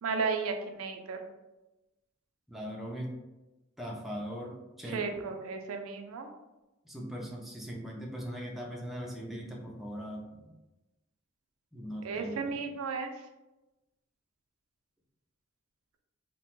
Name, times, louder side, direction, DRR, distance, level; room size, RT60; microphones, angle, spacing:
voice 1, 0.0-1.2 4.8-6.3 12.0-13.1, right 4 dB, 80° right, 4 dB, 0.4 m, -34 dB
voice 2, 2.5-3.1 3.8-5.2 6.8-10.4 11.7-12.6, equal, ahead, -2 dB, 0.4 m, -40 dB
2.8 x 2.1 x 2.9 m, 1.0 s
head